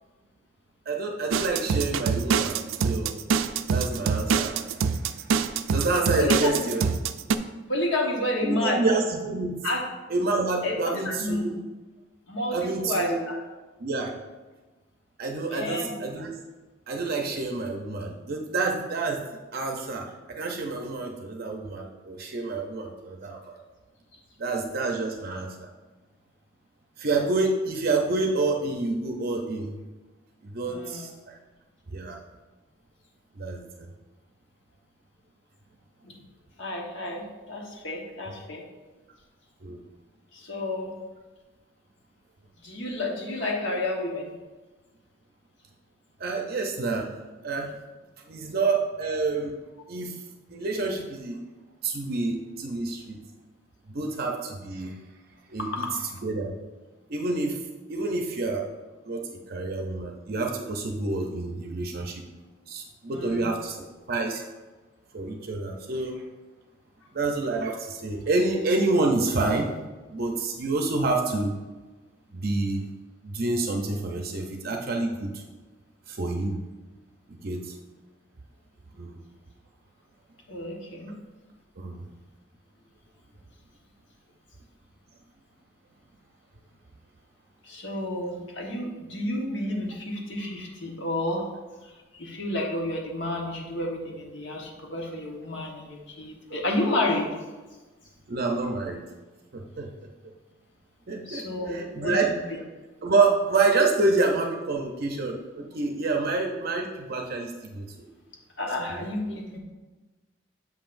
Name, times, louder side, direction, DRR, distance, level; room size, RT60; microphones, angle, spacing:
voice 1, 0.9-3.1 3.7-4.6 5.0-5.3 5.6-6.9 8.4-9.6 10.1-11.6 12.5-13.2 13.8-14.1 15.2-16.3 16.9-19.2 19.5-23.6 24.4-25.7 27.0-29.8 30.4-31.3 31.9-32.2 33.4-33.9 39.6-39.8 46.2-47.1 47.4-47.7 48.3-49.6 49.9-50.2 50.5-51.4 51.8-53.2 53.9-55.0 55.5-55.8 56.2-56.6 57.1-57.6 57.9-58.6 59.0-62.2 62.7-64.4 65.1-66.2 67.1-69.7 70.1-71.6 72.3-72.9 73.2-75.4 76.1-76.6 77.3-77.7 79.0-79.2 81.8-82.0 98.3-99.0 99.5-100.1 101.1-102.3 103.0-108.1 108.9-109.0, right 3 dB, 50° right, 1 dB, 0.6 m, -28 dB
sound 1, 1.3-7.3, right 6 dB, 90° right, 0.3 m, -25 dB
voice 2, 6.2-6.5 7.7-8.8 9.6-9.8 10.6-11.6 12.3-13.4 15.5-15.9 30.6-31.1 36.0-36.2 36.6-38.6 40.3-40.9 42.6-44.3 55.6-55.7 63.1-63.5 80.5-81.1 87.6-91.4 91.8-97.3 101.2-102.4 108.6-109.6, left 1 dB, 65° left, 0 dB, 1.2 m, -30 dB
7.3 x 5.8 x 2.5 m, 1.2 s
head